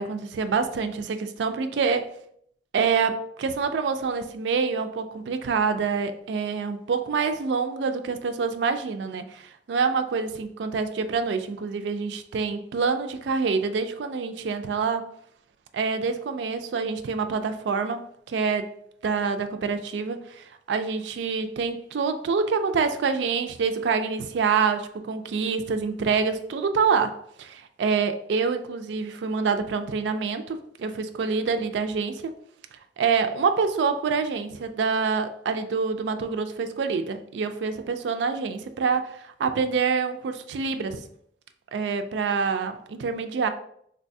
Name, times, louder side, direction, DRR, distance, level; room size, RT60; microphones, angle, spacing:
voice 1, 0.0-2.1 2.7-15.1 15.7-18.7 19.0-32.4 33.0-41.0 41.7-43.5, right 5 dB, 80° right, 8 dB, 0.3 m, -26 dB
3.9 x 2.2 x 2.6 m, 0.68 s
head